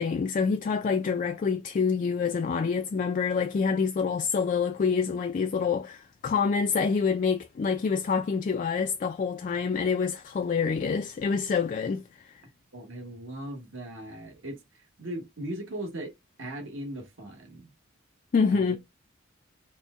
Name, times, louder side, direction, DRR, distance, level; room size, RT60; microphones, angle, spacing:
voice 1, 0.0-12.3 18.3-18.8, left 5 dB, 40° left, 0.3 m, -27 dB
voice 2, 12.7-16.1 16.4-17.7 18.5-18.8, right 1 dB, 65° right, 1.1 m, -38 dB
4.2 x 2.1 x 3.5 m
head